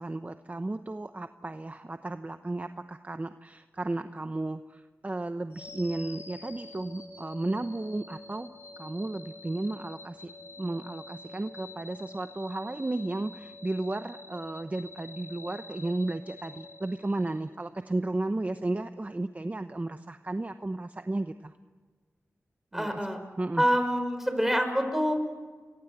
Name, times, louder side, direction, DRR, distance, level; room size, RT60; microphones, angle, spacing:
voice 1, 0.0-8.5 8.8-10.3 10.6-21.5 22.7-23.0 23.4-23.6, right 2 dB, 30° right, 9 dB, 0.9 m, -34 dB
sound 1, 5.5-17.6, left 3 dB, 55° left, 5.8 m, -47 dB
voice 2, 22.7-23.2 23.6-25.2, equal, 5° right, 6 dB, 5.8 m, -26 dB
26.5 x 22.5 x 8.0 m, 1.4 s
cardioid pair, 50°, 5 cm